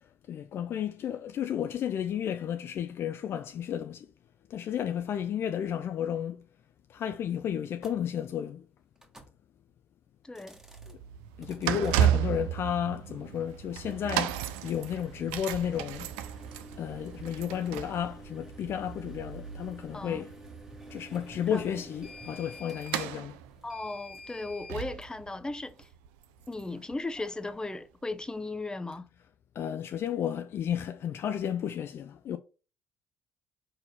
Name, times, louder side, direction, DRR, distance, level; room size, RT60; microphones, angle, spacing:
voice 1, 0.0-4.1 4.5-6.4 6.9-8.6 10.9-11.0 11.4-16.1 16.8-20.3 20.9-23.4 29.5-32.4, left 9 dB, 45° left, 0.5 m, -33 dB
sound 1, 7.8-7.9 9.0-9.3 10.2-10.9 11.4-12.1 13.7-24.8, equal, 10° right, 1.6 m, -49 dB
voice 2, 10.2-10.6 19.9-20.3 21.5-21.8 23.6-25.9 26.5-29.1, left 2 dB, 15° left, 0.8 m, -37 dB
sound 2, 10.6-27.6 28.2-28.3, right 11 dB, 65° right, 0.5 m, -34 dB
5.3 x 4.2 x 5.4 m
figure-of-eight pair, 50°, 6 cm